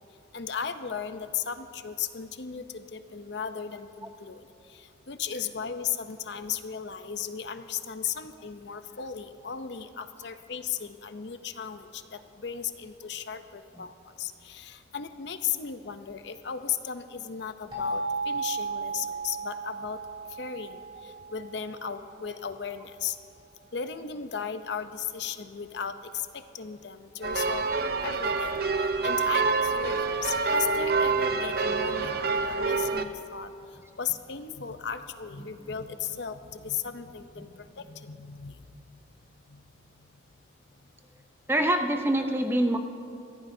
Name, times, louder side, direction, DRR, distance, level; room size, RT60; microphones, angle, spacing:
voice 1, 0.3-4.4 4.7-13.9 14.2-20.0 20.3-23.2 23.7-27.6 28.0-28.5 28.8-33.5 34.0-38.6 39.5-39.6, left 7 dB, 65° left, 9 dB, 0.6 m, -36 dB
sound 1, 17.7-22.4, right 3 dB, 25° right, 3.5 m, -35 dB
sound 2, 27.2-33.0, right 4 dB, 50° right, 0.6 m, -27 dB
voice 2, 41.5-42.8, right 1 dB, 10° right, 5 dB, 0.6 m, -25 dB
23.0 x 15.5 x 2.7 m, 2.6 s
head